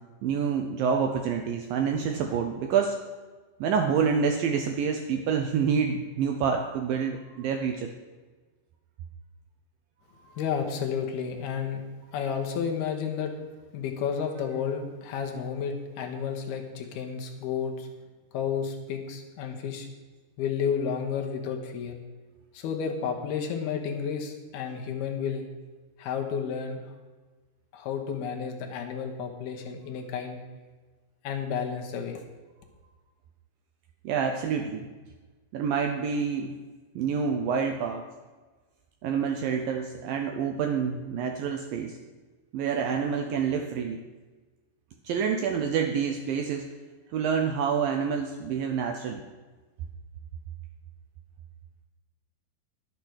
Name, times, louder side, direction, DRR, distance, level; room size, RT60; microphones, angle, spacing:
voice 1, 0.2-2.9 3.6-7.9 34.0-34.9 35.5-36.5 37.0-38.0 39.0-42.0 42.5-44.0 45.0-46.7 47.1-49.3, right 6 dB, 80° right, 5 dB, 2.1 m, -27 dB
voice 2, 10.4-11.8 12.1-13.3 13.7-17.9 18.3-19.9 20.4-22.0 22.5-25.5 26.0-26.8 27.7-30.4 31.2-32.2, left 7 dB, 70° left, 3 dB, 3.0 m, -31 dB
12.0 x 8.2 x 6.4 m, 1.3 s
omnidirectional pair, 4.8 m